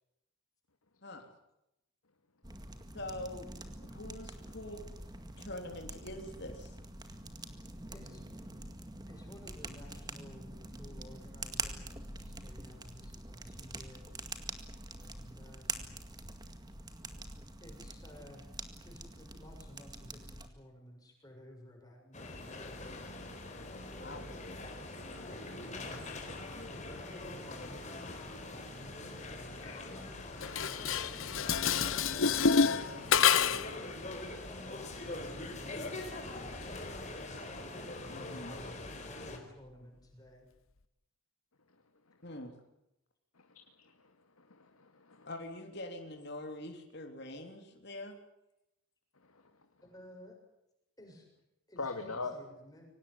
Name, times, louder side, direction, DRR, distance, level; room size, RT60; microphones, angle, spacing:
sound 1, 2.4-20.5, right 3 dB, 20° right, 2.0 m, -45 dB
voice 1, 2.9-4.8 5.4-6.8 24.0-24.2 38.1-38.6 42.2-42.6 45.2-48.2, left 1 dB, 50° left, 4 dB, 3.4 m, -44 dB
voice 2, 7.9-8.2 9.0-14.1 15.0-16.0 17.6-18.5 18.8-23.0 25.6-28.2 29.1-30.7 31.0-33.9 34.3-37.5 38.1-40.5 49.8-50.4 51.0-51.3 51.7-52.9, left 1 dB, 15° left, 1 dB, 7.2 m, -55 dB
sound 2, 22.1-39.4, left 2 dB, 35° left, 4.3 m, -43 dB
Dishes pots and pans, 30.4-33.8, left 6 dB, 65° left, 1.0 m, -28 dB
voice 3, 37.8-38.4 44.4-45.3 49.3-49.4 51.8-52.3, left 3 dB, 85° left, 5 dB, 2.2 m, -42 dB
24.5 x 18.5 x 9.8 m, 0.87 s
head